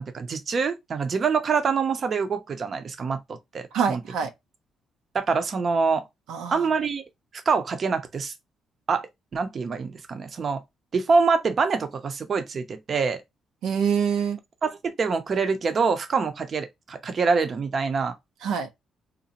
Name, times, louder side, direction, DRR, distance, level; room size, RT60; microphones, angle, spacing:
voice 1, 0.0-4.0 5.1-6.0 6.5-7.0 7.5-8.3 8.9-9.1 9.3-10.6 10.9-13.2 14.6-18.1, right 5 dB, 45° right, 0.6 m, -25 dB
voice 2, 3.7-4.3 6.3-6.7 13.6-14.4 18.4-18.7, right 7 dB, 90° right, 0.6 m, -25 dB
3.9 x 2.1 x 2.7 m
cardioid pair, 90°, 0 cm